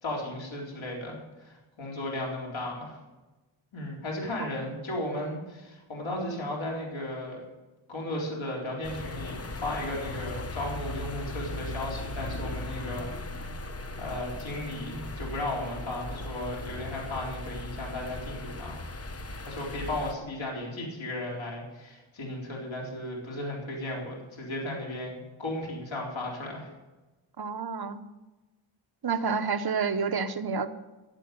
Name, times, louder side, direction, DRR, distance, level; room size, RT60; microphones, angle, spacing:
voice 1, 0.0-3.0 3.7-7.4 7.9-13.5 14.0-18.8 19.4-26.7, left 1 dB, 75° left, -3 dB, 4.2 m, -35 dB
sound 1, 8.8-20.2, left 2 dB, 30° left, 1.0 m, -38 dB
voice 2, 27.4-28.0 29.0-30.7, right 5 dB, 50° right, 8 dB, 1.0 m, -29 dB
15.5 x 7.9 x 6.8 m, 1.1 s
wide cardioid pair, 115°, 47 cm